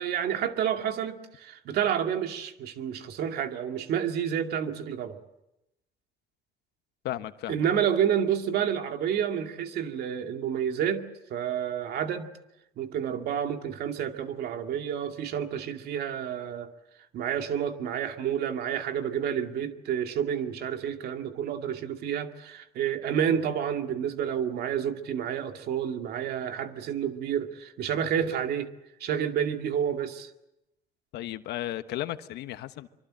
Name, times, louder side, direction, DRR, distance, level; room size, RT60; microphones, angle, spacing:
voice 1, 0.0-5.2 7.5-12.3 12.8-16.7 17.1-28.7 29.0-30.3, right 9 dB, 70° right, 5 dB, 2.3 m, -29 dB
voice 2, 7.0-7.7 31.1-32.9, left 14 dB, 80° left, 11 dB, 1.2 m, -34 dB
25.0 x 24.5 x 7.6 m, 0.89 s
cardioid pair, 110°, 17 cm